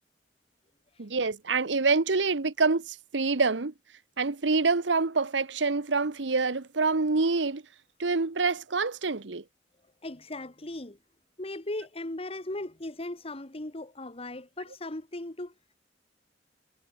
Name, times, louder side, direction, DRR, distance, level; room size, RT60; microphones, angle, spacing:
voice 1, 1.0-3.7 4.2-7.6 8.0-9.4, right 4 dB, 85° right, 1.1 m, -26 dB
voice 2, 10.0-11.0 11.4-15.5, left 1 dB, 35° left, 1.8 m, -37 dB
head